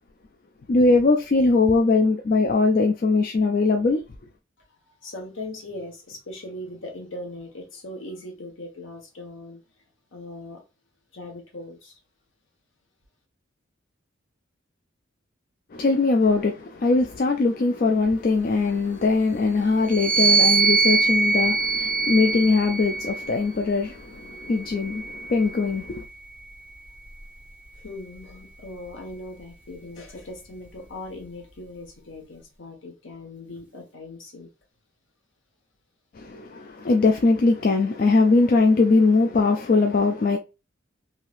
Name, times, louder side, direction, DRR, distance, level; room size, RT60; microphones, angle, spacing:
voice 1, 0.7-4.0 15.7-26.0 36.1-40.4, left 3 dB, 45° left, 0.3 m, -21 dB
voice 2, 5.0-9.6 10.1-10.6 11.1-12.0 27.8-34.5, left 2 dB, 70° left, 1.2 m, -39 dB
sound 1, 19.8-23.4 24.3-25.9, right 4 dB, 10° right, 0.8 m, -23 dB
3.1 x 2.8 x 2.4 m
head